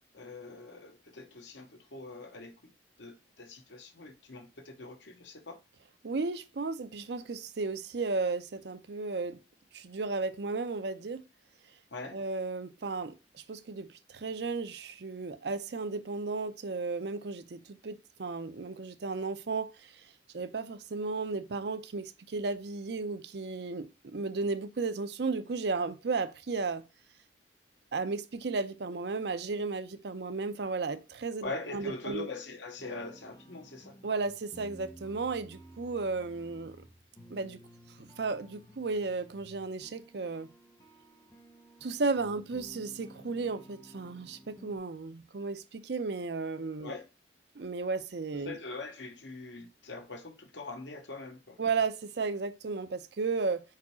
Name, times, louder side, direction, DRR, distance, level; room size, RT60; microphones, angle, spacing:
voice 1, 0.1-2.5 3.0-5.6 11.9-12.2 31.4-33.9 46.8-47.0 48.4-51.6, left 3 dB, 80° left, 1.2 m, -42 dB
voice 2, 6.0-9.4 9.7-11.2 12.1-20.1 20.3-26.8 27.9-32.3 34.0-36.8 37.3-37.6 38.0-40.5 41.8-46.9 47.6-48.6 51.6-53.6, right 4 dB, 65° right, 0.5 m, -34 dB
sound 1, 32.8-44.8, right 1 dB, 20° left, 0.8 m, -54 dB
4.9 x 4.7 x 4.2 m
head